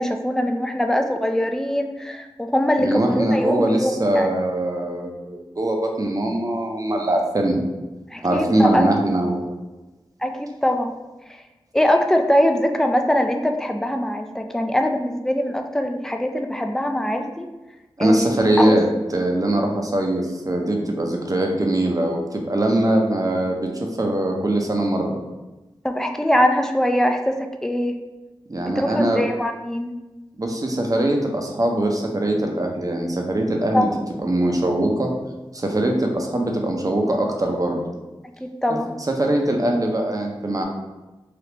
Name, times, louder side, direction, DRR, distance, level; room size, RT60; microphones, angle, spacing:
voice 1, 0.0-4.3 8.1-8.9 10.2-10.9 11.3-11.4 11.7-17.5 18.0-18.8 25.8-28.0 28.7-29.9 33.7-34.0 38.4-38.9, left 1 dB, 5° left, 5 dB, 0.4 m, -22 dB
voice 2, 2.8-7.6 8.2-9.5 18.0-18.8 19.1-25.2 28.5-29.2 30.4-33.9 34.2-35.1 35.5-37.8 38.7-38.8 39.1-40.6, right 1 dB, 40° right, 1 dB, 0.6 m, -22 dB
3.4 x 2.4 x 2.9 m, 1.1 s
cardioid pair, 40°, 10 cm